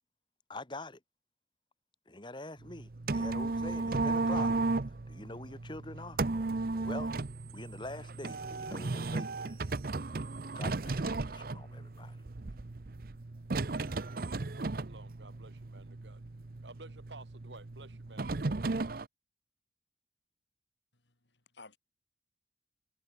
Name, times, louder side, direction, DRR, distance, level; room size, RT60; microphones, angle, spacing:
voice 1, 0.5-1.0 2.1-4.5 4.8-6.2 6.8-7.1 7.5-9.7 10.6-12.2 12.5-12.7, left 2 dB, 25° left, 1.8 m, -45 dB
sound 1, 2.6-19.0, right 3 dB, 55° right, 0.7 m, -35 dB
voice 2, 14.3-16.2 16.6-18.7, right 2 dB, 85° right, 4.5 m, -53 dB
voice 3, 20.9-21.8, left 3 dB, 80° left, 3.9 m, -56 dB
head